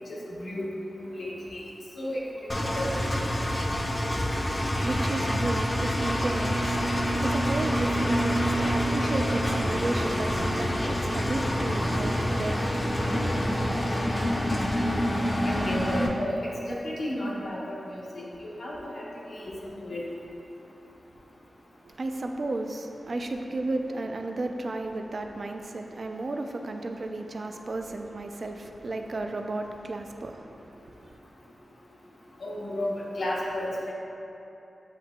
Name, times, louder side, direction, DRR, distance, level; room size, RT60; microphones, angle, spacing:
voice 1, 0.1-1.6 2.0-3.0 15.4-20.0 32.4-33.9, left 1 dB, 90° left, -7 dB, 0.9 m, -33 dB
Engine, 2.5-16.1, equal, 35° left, 0.5 m, -27 dB
voice 2, 4.7-13.8 21.8-31.2, right 2 dB, 55° right, 4 dB, 0.3 m, -34 dB
8.1 x 2.8 x 2.2 m, 2.8 s
wide cardioid pair, 85°, 0 cm